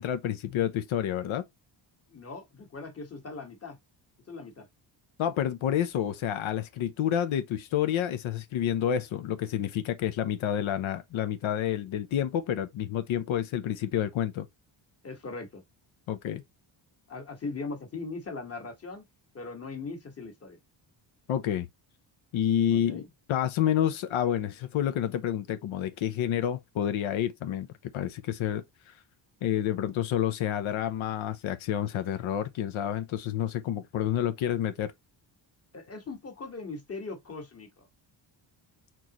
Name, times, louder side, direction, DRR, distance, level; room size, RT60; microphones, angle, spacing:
voice 1, 0.0-1.4 5.2-14.5 16.1-16.4 21.3-21.7 22.3-23.0 23.3-27.7 27.9-28.9 29.4-34.9, left 10 dB, 85° left, 0.8 m, -29 dB
voice 2, 2.1-3.8 4.3-4.7 15.0-15.6 17.1-19.0 19.3-20.6 22.7-23.1 35.7-37.9, left 3 dB, 30° left, 1.6 m, -40 dB
4.6 x 3.9 x 3.0 m
cardioid pair, 145°, 46 cm